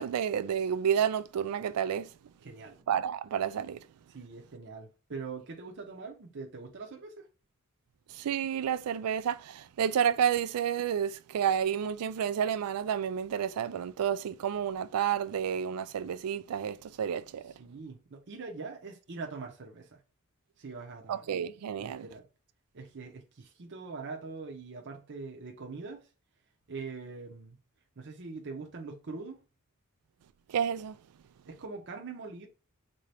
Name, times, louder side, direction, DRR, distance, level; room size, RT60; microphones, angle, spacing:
voice 1, 0.0-2.1 2.9-3.8 8.1-17.5 21.1-22.1 30.5-30.9, right 8 dB, 80° right, 0.3 m, -30 dB
voice 2, 2.4-2.8 4.1-7.3 17.4-20.0 20.6-21.3 21.8-22.3 22.7-26.1 26.7-27.6 28.0-29.4 31.5-32.5, right 4 dB, 55° right, 0.7 m, -43 dB
3.8 x 2.7 x 3.3 m
head